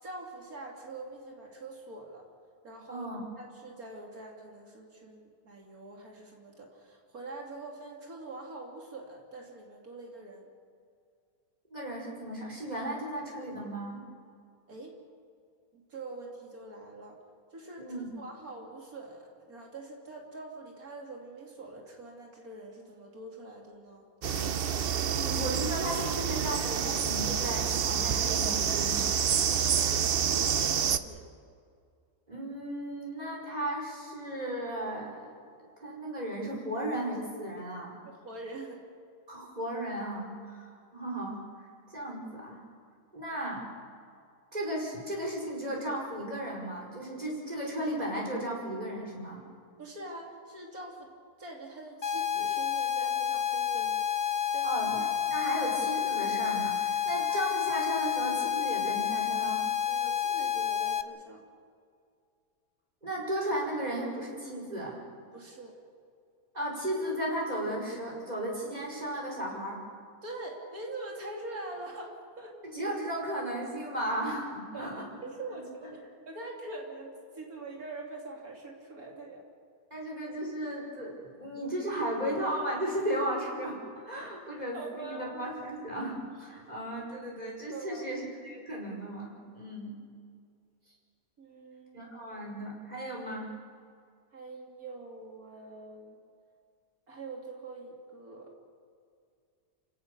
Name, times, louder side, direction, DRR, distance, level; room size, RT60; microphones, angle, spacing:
voice 1, 0.0-2.3 2.6-3.1 3.4-10.5 14.7-15.0 15.7-17.2 17.5-24.1 29.8-31.2 38.1-38.8 49.8-51.1 51.4-54.0 54.5-54.7 57.1-57.2 59.9-61.4 65.3-65.7 70.2-72.6 74.7-74.9 75.2-79.4 84.7-85.3 86.5-86.6 87.7-88.1 91.4-92.1 94.3-96.2 97.1-98.5, right 2 dB, 75° right, 0 dB, 3.3 m, -44 dB
voice 2, 2.9-3.3 11.7-14.0 17.8-18.2 25.1-29.2 32.3-35.4 35.8-38.0 39.3-42.6 43.1-43.7 44.5-49.4 54.6-59.6 63.0-65.0 66.5-69.8 72.6-75.0 75.5-75.6 79.9-89.9 91.9-93.5, right 1 dB, 25° right, -3 dB, 5.3 m, -35 dB
sound 1, 24.2-31.0, right 8 dB, 50° right, 0.8 m, -28 dB
sound 2, 52.0-61.0, left 9 dB, 50° left, 0.5 m, -30 dB
28.5 x 17.0 x 6.8 m, 2.3 s
omnidirectional pair, 1.6 m